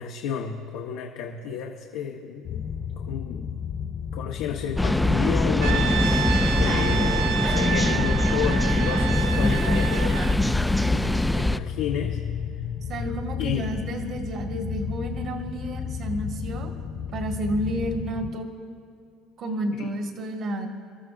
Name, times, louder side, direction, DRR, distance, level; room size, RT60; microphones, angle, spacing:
voice 1, 0.0-2.6 3.0-3.5 4.1-10.2 10.9-12.2 13.4-13.7 19.7-19.9, left 8 dB, 80° left, 1 dB, 1.0 m, -32 dB
sound 1, 2.4-18.3, left 7 dB, 55° left, 1.4 m, -33 dB
sound 2, 4.8-11.6, left 1 dB, 5° left, 0.3 m, -23 dB
Brass instrument, 5.6-10.4, right 9 dB, 75° right, 0.5 m, -30 dB
voice 2, 12.9-16.7 17.1-18.5 19.4-20.7, right 1 dB, 55° right, 2 dB, 1.9 m, -31 dB
26.0 x 13.5 x 2.5 m, 2.5 s
cardioid pair, 125°, 0 cm